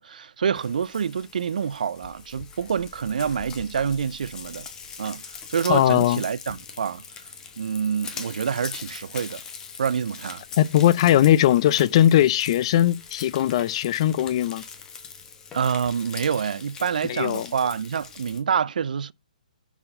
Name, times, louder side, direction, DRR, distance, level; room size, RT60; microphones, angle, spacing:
voice 1, 0.0-4.7 5.0-5.2 5.5-7.0 7.6-9.4 9.8-10.4 15.5-19.1, right 7 dB, 70° right, 0.3 m, -27 dB
Frying (food), 0.5-18.4, left 6 dB, 15° left, 1.0 m, -41 dB
voice 2, 5.7-6.2 10.6-14.6 17.1-17.5, left 12 dB, 40° left, 0.4 m, -19 dB
5.7 x 4.4 x 5.3 m
hypercardioid pair, 150°, 5 cm